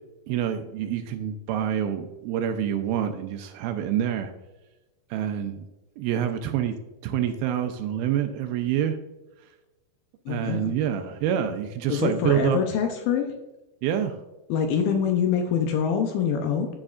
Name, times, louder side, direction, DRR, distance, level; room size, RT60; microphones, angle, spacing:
voice 1, 0.3-4.3 5.1-5.6 6.0-6.7 7.0-9.0 10.3-12.6 13.8-14.2, right 9 dB, 80° right, 7 dB, 2.3 m, -27 dB
voice 2, 10.3-10.7 11.9-13.3 14.5-16.7, left 7 dB, 80° left, 4 dB, 2.1 m, -25 dB
11.0 x 5.2 x 2.4 m, 1.0 s
omnidirectional pair, 4.6 m